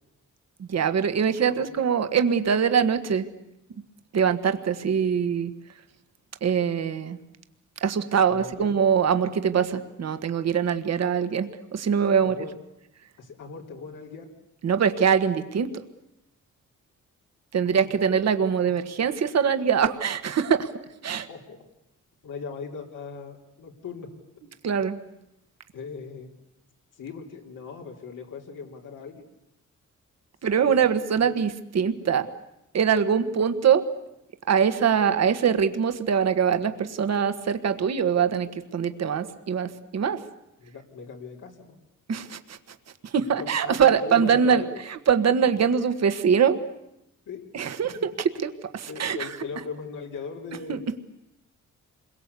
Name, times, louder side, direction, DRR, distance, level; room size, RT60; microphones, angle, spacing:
voice 1, 0.6-3.3 4.1-5.5 6.4-7.2 7.8-12.3 14.6-15.7 17.5-20.7 21.0-21.3 24.6-25.0 30.4-32.3 32.7-33.9 34.5-40.2 42.1-42.6 43.0-46.6 47.5-49.4 50.7-50.8, right 7 dB, 55° right, 9 dB, 1.6 m, -23 dB
voice 2, 8.3-8.7 12.2-12.6 13.2-14.3 17.8-17.9 18.6-18.7 21.3-21.6 22.2-24.1 25.7-26.3 27.0-29.3 30.5-30.8 31.2-31.3 40.6-41.8 43.4-44.8 47.3-47.4 48.9-50.8, left 5 dB, 85° left, 0 dB, 3.6 m, -39 dB
28.0 x 22.0 x 8.4 m, 0.85 s
wide cardioid pair, 135°, 31 cm